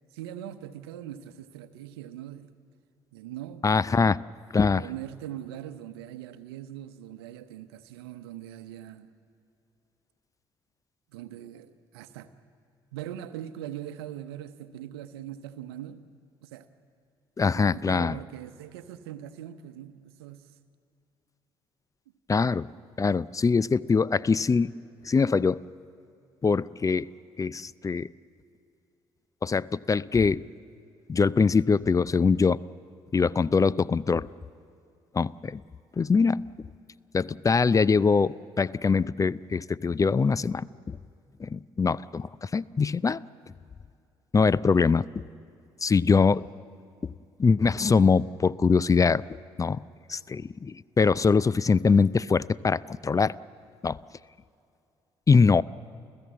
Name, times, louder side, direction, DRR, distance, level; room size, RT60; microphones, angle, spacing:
voice 1, 0.1-2.5 3.1-3.6 4.7-9.1 11.1-12.3 12.9-16.0 16.4-16.7 17.5-20.5, right 11 dB, 80° right, 0.9 m, -41 dB
voice 2, 3.6-4.2 4.5-4.8 17.4-18.2 22.3-22.7 23.0-24.8 25.0-25.7 26.4-28.1 29.4-30.4 31.1-32.6 33.1-34.3 35.1-35.6 36.0-36.7 37.1-41.0 41.4-43.2 44.3-45.2 45.8-46.4 47.0-47.1 47.4-49.2 49.6-49.8 50.1-53.3 53.8-54.0 55.3-55.6, left 5 dB, 25° left, 0.5 m, -23 dB
29.5 x 15.5 x 7.6 m
hypercardioid pair, 50°, 13 cm